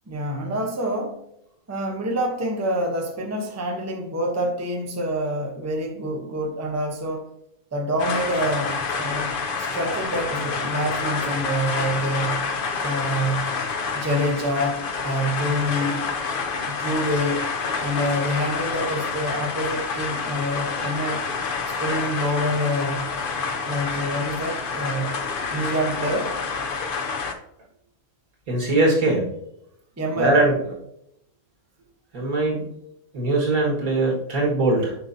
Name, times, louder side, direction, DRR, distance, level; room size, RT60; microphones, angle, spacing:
voice 1, 0.1-1.2 1.7-7.3 7.7-12.5 12.8-13.6 13.9-16.0 16.6-17.5 17.8-21.3 21.8-23.1 23.6-25.2 25.5-26.4 30.0-30.4, equal, 15° right, 0.6 m, -27 dB
sound 1, 8.0-27.3, left 5 dB, 55° left, 0.7 m, -28 dB
voice 2, 28.5-29.3 30.2-30.6 32.1-32.7 33.1-35.0, right 2 dB, 90° right, 2.1 m, -21 dB
6.7 x 5.5 x 2.7 m
omnidirectional pair, 1.4 m